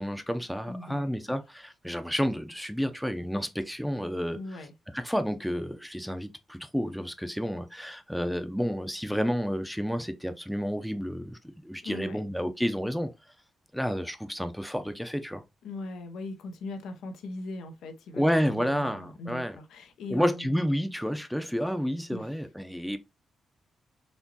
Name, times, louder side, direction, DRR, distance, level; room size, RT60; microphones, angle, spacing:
voice 1, 0.0-4.6 4.9-13.1 13.7-15.4 18.1-19.6 20.1-23.0, equal, ahead, 0.7 m, -30 dB
voice 2, 0.7-1.1 4.3-4.7 11.8-12.3 15.6-20.6 22.1-22.3, left 2 dB, 85° left, 0.8 m, -40 dB
4.4 x 2.9 x 2.9 m
supercardioid pair, 60°, 0 cm